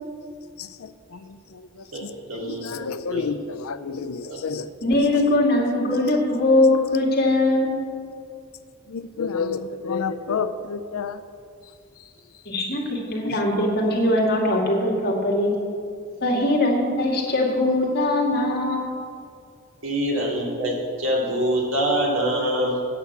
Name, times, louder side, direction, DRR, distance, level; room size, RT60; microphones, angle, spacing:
voice 1, 1.9-3.3 3.9-4.4 19.8-22.8, equal, 70° right, -3 dB, 2.5 m, -25 dB
voice 2, 2.5-3.4 3.6-4.6 9.2-11.1, left 5 dB, 90° left, 12 dB, 0.5 m, -28 dB
voice 3, 4.8-7.8 12.5-15.5 16.2-19.0, left 1 dB, 50° left, -2 dB, 2.0 m, -21 dB
8.7 x 6.9 x 8.2 m, 2.3 s
head